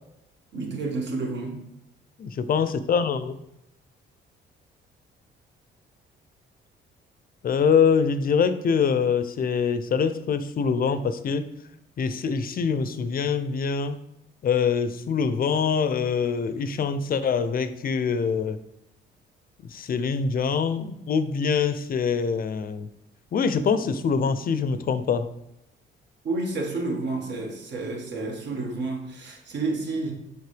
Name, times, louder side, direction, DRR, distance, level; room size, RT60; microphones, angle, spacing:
voice 1, 0.5-1.6 26.2-30.1, right 3 dB, 65° right, 0 dB, 1.7 m, -30 dB
voice 2, 2.2-3.4 7.4-11.4 12.0-14.0 14.4-18.6 19.7-22.9 23.3-25.3, left 6 dB, 45° left, 12 dB, 0.5 m, -24 dB
6.6 x 4.2 x 3.4 m, 0.83 s
cardioid pair, 90°, 20 cm